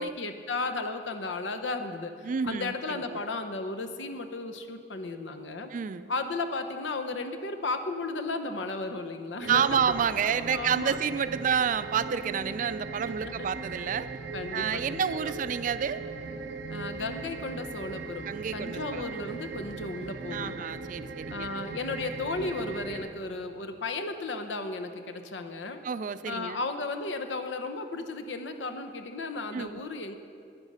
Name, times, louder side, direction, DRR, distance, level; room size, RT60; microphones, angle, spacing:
voice 1, 0.0-5.7 6.1-9.8 10.5-11.0 13.2-13.5 14.3-15.3 16.7-20.6 21.3-25.8 26.3-30.2, left 3 dB, 90° left, 7 dB, 0.8 m, -34 dB
voice 2, 2.2-3.2 5.7-6.1 9.5-14.1 14.5-16.0 18.3-19.0 20.3-21.5 25.8-26.6 29.5-29.8, right 7 dB, 45° right, 14 dB, 0.3 m, -29 dB
sound 1, 9.4-23.1, right 4 dB, 80° right, 0.6 m, -39 dB
10.5 x 9.8 x 5.4 m, 2.4 s
head